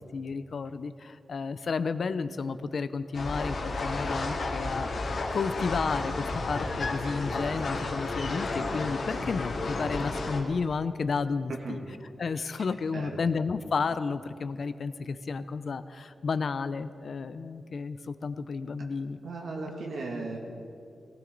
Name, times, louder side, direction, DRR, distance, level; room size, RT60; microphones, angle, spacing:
voice 1, 0.1-11.8 12.2-19.2, left 4 dB, 55° left, 12 dB, 0.5 m, -32 dB
sound 1, 3.1-10.4, left 2 dB, 70° left, 2.2 m, -32 dB
voice 2, 11.5-11.8 12.9-13.1 19.2-20.4, right 3 dB, 90° right, 0 dB, 2.1 m, -36 dB
19.0 x 17.5 x 3.9 m, 2.5 s
wide cardioid pair, 145°, 0 cm